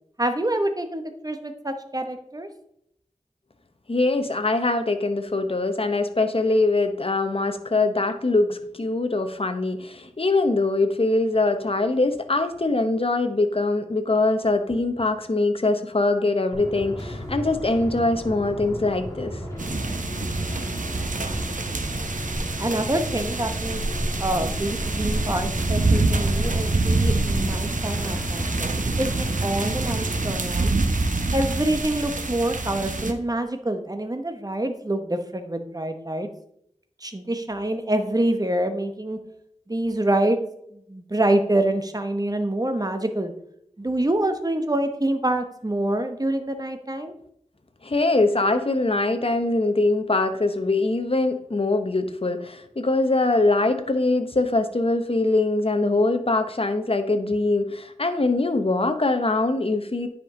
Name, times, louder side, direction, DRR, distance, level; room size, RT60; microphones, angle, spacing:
voice 1, 0.2-2.5 22.6-23.8 24.2-30.7 31.3-36.3 37.0-39.2 39.7-40.4 40.7-43.3 43.8-47.1, right 1 dB, 30° right, 7 dB, 0.9 m, -26 dB
voice 2, 3.9-19.4 47.8-60.1, left 2 dB, 45° left, 8 dB, 0.8 m, -23 dB
sound 1, 16.5-30.2, equal, 25° left, 2.7 m, -34 dB
sound 2, 19.6-33.1, right 2 dB, 80° right, 0.8 m, -26 dB
9.8 x 5.2 x 3.7 m, 0.73 s
wide cardioid pair, 55°, 13 cm